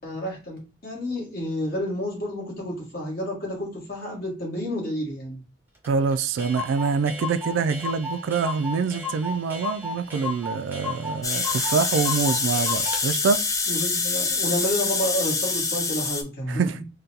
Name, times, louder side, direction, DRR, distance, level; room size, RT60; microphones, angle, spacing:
voice 1, 0.0-5.4 13.7-16.8, equal, 55° left, 1.5 m, -30 dB
Clock, 5.8-5.9 6.1-6.2 6.4-13.0, left 3 dB, 10° right, 0.7 m, -34 dB
voice 2, 5.9-13.4 16.5-16.8, right 5 dB, 90° right, 0.3 m, -25 dB
sound 1, 11.2-16.2, left 4 dB, 20° left, 0.4 m, -25 dB
3.7 x 2.2 x 2.7 m
head